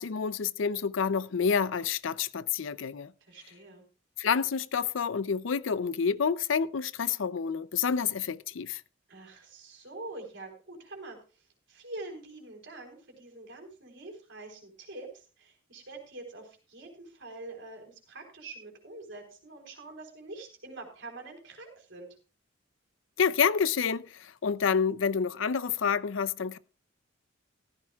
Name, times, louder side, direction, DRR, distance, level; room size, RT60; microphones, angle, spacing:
voice 1, 0.0-3.1 4.2-8.8 23.2-26.6, left 6 dB, 75° left, 0.5 m, -28 dB
voice 2, 3.2-3.8 9.1-22.2, right 2 dB, 65° right, 3.9 m, -45 dB
14.5 x 14.5 x 2.3 m
head